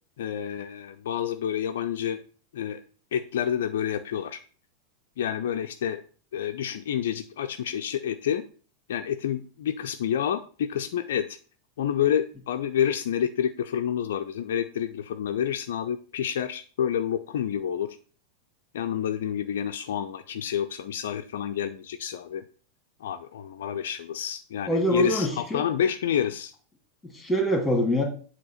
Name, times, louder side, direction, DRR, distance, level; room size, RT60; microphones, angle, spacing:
voice 1, 0.2-2.2 2.5-2.8 3.1-4.4 5.2-6.0 6.3-8.4 8.9-11.4 11.8-18.0 18.7-22.4 23.0-26.5, left 9 dB, 60° left, 8 dB, 0.4 m, -28 dB
voice 2, 24.6-25.6 27.0-28.0, equal, 5° left, 2 dB, 1.9 m, -25 dB
7.9 x 2.8 x 5.5 m, 0.41 s
figure-of-eight pair, 90°, 0 cm